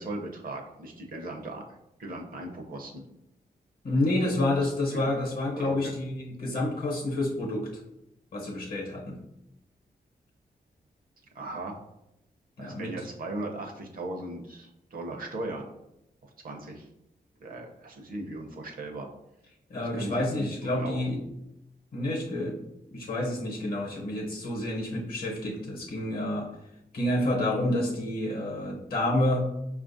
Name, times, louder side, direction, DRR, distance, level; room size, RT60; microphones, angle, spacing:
voice 1, 0.0-1.6 2.0-3.0 3.9-5.1 5.6-5.9 11.3-11.7 12.6-15.7 16.4-16.9 17.4-19.1 19.8-21.2, right 2 dB, 60° right, 2 dB, 0.6 m, -38 dB
voice 2, 3.8-7.7 8.3-9.2 12.6-12.9 19.7-21.2 21.9-22.6 22.9-26.5 26.9-29.5, left 1 dB, 65° left, -1 dB, 0.8 m, -29 dB
5.0 x 2.4 x 2.5 m, 0.86 s
wide cardioid pair, 135°, 16 cm